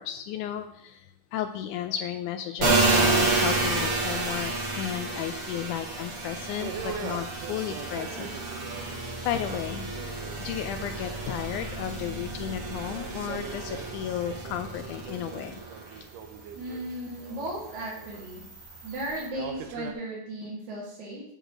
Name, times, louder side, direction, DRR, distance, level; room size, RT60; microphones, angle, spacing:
voice 1, 0.0-8.4 9.3-9.9 10.4-15.6, left 10 dB, 80° left, 9 dB, 1.8 m, -34 dB
sound 1, 2.6-16.0 16.4-19.3, right 3 dB, 30° right, 1.9 m, -30 dB
sound 2, 6.6-19.9, right 6 dB, 75° right, 2.4 m, -42 dB
voice 2, 16.5-18.4 18.8-21.2, right 1 dB, 60° right, -7 dB, 3.3 m, -36 dB
8.8 x 4.9 x 6.2 m, 0.77 s
omnidirectional pair, 3.9 m